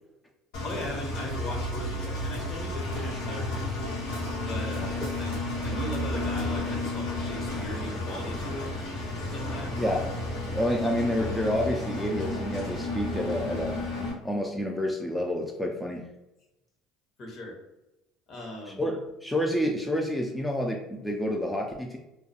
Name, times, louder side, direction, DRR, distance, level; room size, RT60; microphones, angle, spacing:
Engine, 0.5-14.1, left 2 dB, 80° left, 1.0 m, -33 dB
voice 1, 0.6-3.8 4.4-8.9 9.3-9.8 17.2-17.6 18.3-18.8, left 1 dB, 50° left, 0 dB, 0.9 m, -38 dB
sound 1, 1.3-6.5, right 3 dB, 80° right, 0.4 m, -37 dB
voice 2, 9.7-10.1 10.5-13.8 14.2-16.1 18.8-22.0, equal, 5° left, 1 dB, 0.3 m, -29 dB
2.3 x 2.2 x 2.6 m, 0.95 s
supercardioid pair, 80°, 0 cm